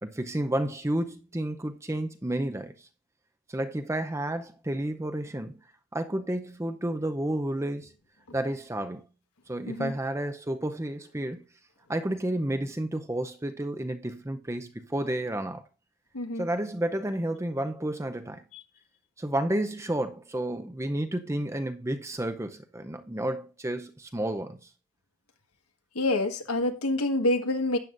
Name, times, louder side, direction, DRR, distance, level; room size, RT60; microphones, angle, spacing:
voice 1, 0.0-2.7 3.5-5.6 5.9-7.9 8.3-9.0 9.5-11.4 11.9-15.6 16.4-18.4 19.2-24.6, right 1 dB, 10° right, 0.6 m, -31 dB
voice 2, 16.1-16.4 25.9-27.8, left 1 dB, 80° left, 1.7 m, -27 dB
12.5 x 9.0 x 2.6 m
head